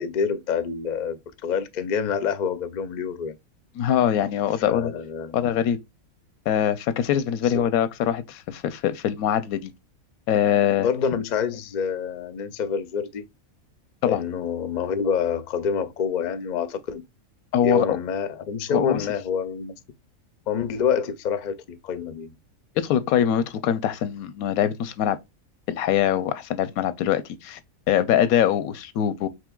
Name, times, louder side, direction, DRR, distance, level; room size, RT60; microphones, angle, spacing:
voice 1, 0.0-3.4 4.5-5.4 7.4-7.6 10.8-13.2 14.0-17.0 17.6-19.7 20.5-22.3, left 6 dB, 60° left, 0.4 m, -27 dB
voice 2, 3.8-4.9 5.3-5.8 6.5-9.7 10.3-10.9 14.0-14.2 17.5-17.9 18.7-19.1 22.8-25.2 25.7-27.6 27.9-29.3, left 10 dB, 85° left, 1.1 m, -23 dB
5.1 x 3.0 x 2.2 m
omnidirectional pair, 1.4 m